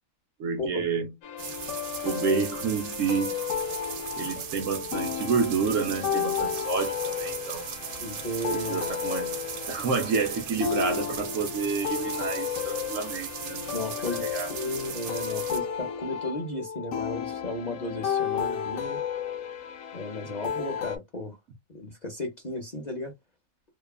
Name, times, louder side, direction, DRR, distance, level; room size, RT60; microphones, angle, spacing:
voice 1, 0.4-1.1 2.0-3.4 4.1-7.7 8.5-9.4 9.7-13.7 14.2-14.5, right 5 dB, 65° right, 1.0 m, -29 dB
sound 1, 1.2-21.0, left 8 dB, 75° left, 1.0 m, -33 dB
sound 2, 1.4-15.6, right 8 dB, 85° right, 1.1 m, -38 dB
voice 2, 8.0-8.8 13.7-19.0 19.9-21.4 21.7-23.1, left 1 dB, 40° left, 0.7 m, -34 dB
2.9 x 2.2 x 2.3 m
omnidirectional pair, 1.6 m